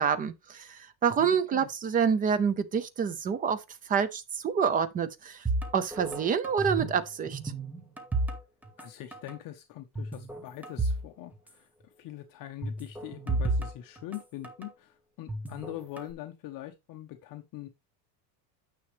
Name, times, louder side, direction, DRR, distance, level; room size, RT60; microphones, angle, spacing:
voice 1, 0.0-3.6 3.9-5.4 5.7-7.4, right 7 dB, 20° right, 0.4 m, -27 dB
voice 2, 1.2-1.7 8.8-17.7, left 13 dB, 40° left, 1.0 m, -43 dB
sound 1, 5.5-7.0 7.3-8.9 9.1-9.4 10.0-11.1 11.3-11.4 12.6-14.7 15.3-16.1, right 2 dB, 5° right, 1.0 m, -32 dB
9.5 x 6.3 x 3.3 m
cardioid pair, 160°, 49 cm